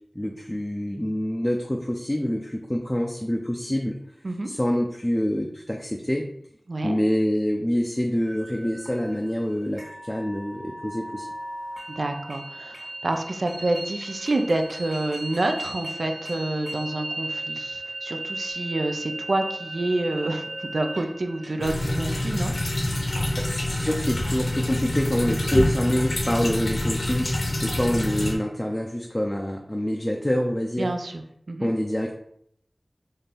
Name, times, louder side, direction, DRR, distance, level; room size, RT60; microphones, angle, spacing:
voice 1, 0.2-4.0 4.5-6.3 6.8-11.3 23.4-27.3 27.6-30.9 31.6-32.1, equal, 15° left, 1 dB, 0.4 m, -26 dB
voice 2, 6.7-7.0 11.9-22.5 30.8-31.2 31.5-31.7, right 2 dB, 70° right, 5 dB, 0.4 m, -28 dB
sound 1, 8.2-24.1, right 1 dB, 45° right, 1.5 m, -37 dB
sound 2, 21.6-28.4, left 1 dB, 65° left, 0.8 m, -26 dB
4.2 x 2.5 x 3.4 m, 0.71 s
wide cardioid pair, 65°, 0 cm